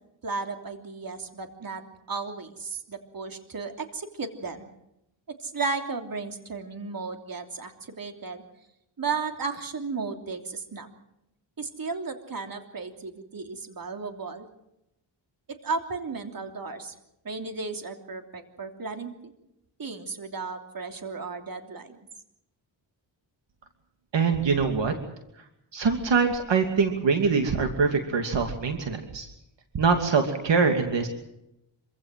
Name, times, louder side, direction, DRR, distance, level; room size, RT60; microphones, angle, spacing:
voice 1, 0.2-1.8 2.1-4.7 5.4-8.4 9.0-10.9 11.6-14.5 15.5-16.9 17.2-19.3 19.8-22.0, right 4 dB, 45° right, 5 dB, 3.2 m, -34 dB
voice 2, 24.1-24.9 25.7-29.3 29.7-31.1, right 5 dB, 65° right, 5 dB, 2.8 m, -23 dB
26.0 x 16.5 x 7.7 m, 0.84 s
cardioid pair, 80°, 47 cm